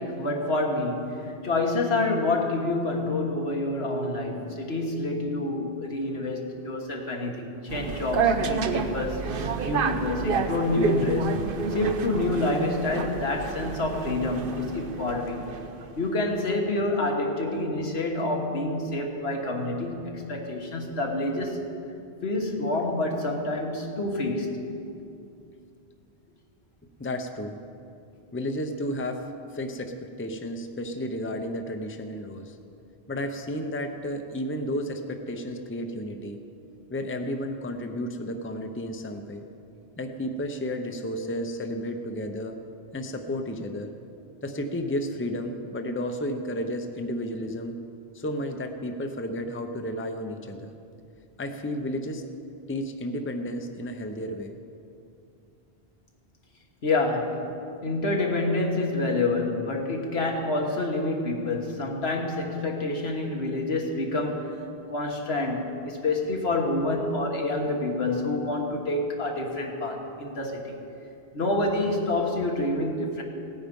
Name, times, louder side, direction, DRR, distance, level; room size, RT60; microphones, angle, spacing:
voice 1, 0.0-11.3 11.7-15.4 16.0-21.6 22.2-24.7 56.8-57.5 57.8-64.5 64.9-70.8 71.3-73.2, left 2 dB, 80° left, 1 dB, 1.7 m, -28 dB
sound 1, 7.7-16.0, right 5 dB, 60° right, 0.9 m, -29 dB
voice 2, 27.0-27.6 28.3-32.6 33.1-36.4 36.9-39.4 40.0-42.6 42.9-43.9 44.4-47.8 48.1-50.7 51.4-52.3 52.7-54.5, equal, 15° left, 5 dB, 0.7 m, -32 dB
17.0 x 9.2 x 5.3 m, 2.6 s
omnidirectional pair, 1.1 m